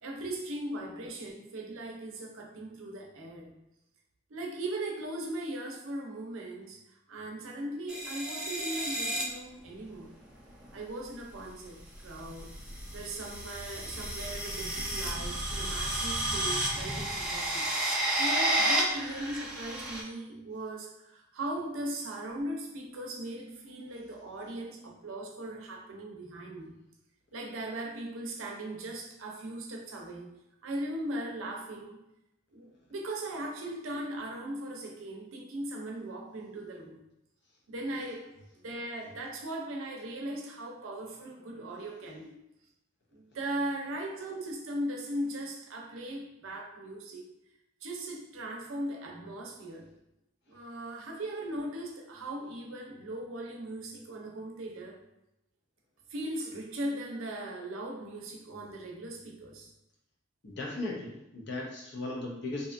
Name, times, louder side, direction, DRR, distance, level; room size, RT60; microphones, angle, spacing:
voice 1, 0.0-3.5 4.3-6.8 7.1-10.2 10.7-12.6 12.9-17.7 18.2-26.7 27.3-30.3 30.6-32.0 32.5-37.1 37.7-38.3 38.6-42.4 43.1-47.2 47.8-49.9 50.5-55.0 56.1-59.7, right 1 dB, 80° right, 0 dB, 0.5 m, -38 dB
sound 1, 7.9-9.2 10.5-10.8 11.8-20.0, right 1 dB, 5° right, 0.3 m, -32 dB
voice 2, 60.4-62.7, left 2 dB, 55° left, -1 dB, 0.5 m, -37 dB
2.6 x 2.3 x 2.5 m, 0.88 s
head